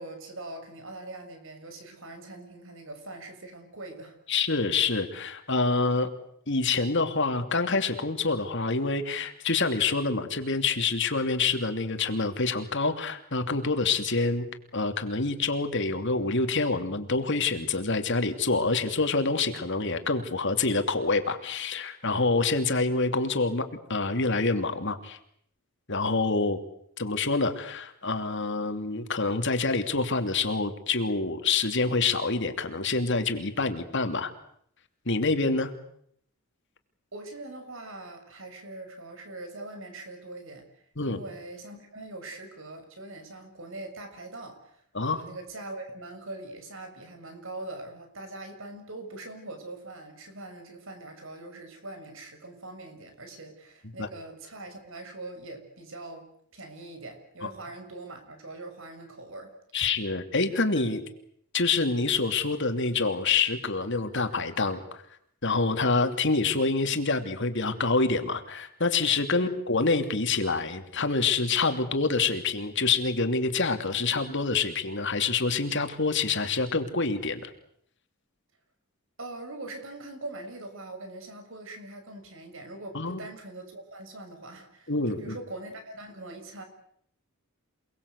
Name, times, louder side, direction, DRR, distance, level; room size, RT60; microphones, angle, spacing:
voice 1, 0.0-4.2 37.1-40.6 41.0-44.8 45.0-56.2 56.5-59.5 69.4-69.6 79.2-86.6, right 2 dB, 60° right, 6 dB, 6.6 m, -42 dB
voice 2, 4.3-6.1 6.5-14.4 14.7-25.2 25.9-26.6 27.0-34.3 35.1-35.7 41.0-41.2 44.9-45.2 54.0-54.1 57.4-57.5 59.7-61.0 61.5-65.0 65.4-77.5 82.9-83.2 84.9-85.3, left 3 dB, 55° left, 7 dB, 2.8 m, -26 dB
29.0 x 20.5 x 8.2 m, 0.68 s
head